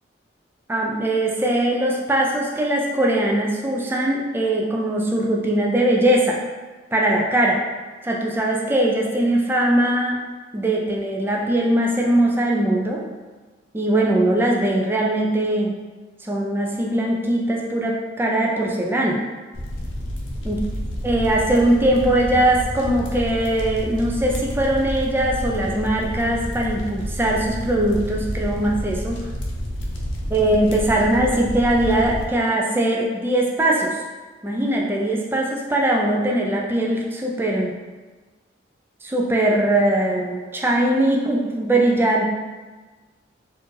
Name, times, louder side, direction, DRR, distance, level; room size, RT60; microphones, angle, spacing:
voice 1, 0.7-6.4 6.9-7.6 8.0-10.2 10.5-13.0 13.7-15.7 16.2-19.2 20.4-20.6 21.0-29.2 30.3-34.0 34.4-37.8 39.0-42.3, right 1 dB, 10° right, -2 dB, 0.3 m, -21 dB
sound 1, 19.5-32.3, equal, 85° left, 0.6 m, -29 dB
4.3 x 2.5 x 3.1 m, 1.3 s
head